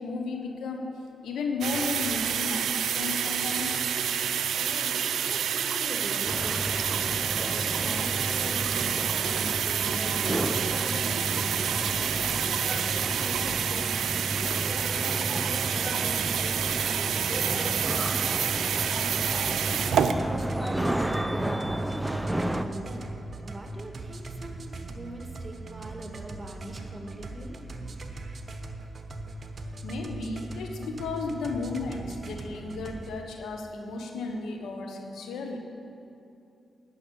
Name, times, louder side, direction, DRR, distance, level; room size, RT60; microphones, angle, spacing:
voice 1, 0.0-3.8 29.8-35.6, left 3 dB, 80° left, 3 dB, 1.1 m, -34 dB
sound 1, 1.6-20.1, right 8 dB, 80° right, 0.5 m, -28 dB
voice 2, 4.3-20.8 22.0-23.1 23.4-27.6, right 1 dB, 30° right, 2 dB, 1.8 m, -42 dB
sound 2, 6.2-22.6, right 1 dB, 10° right, 0.6 m, -32 dB
sound 3, 19.3-33.2, right 2 dB, 50° right, 1.0 m, -40 dB
11.0 x 5.9 x 8.7 m, 2.6 s
supercardioid pair, 45°, 0 cm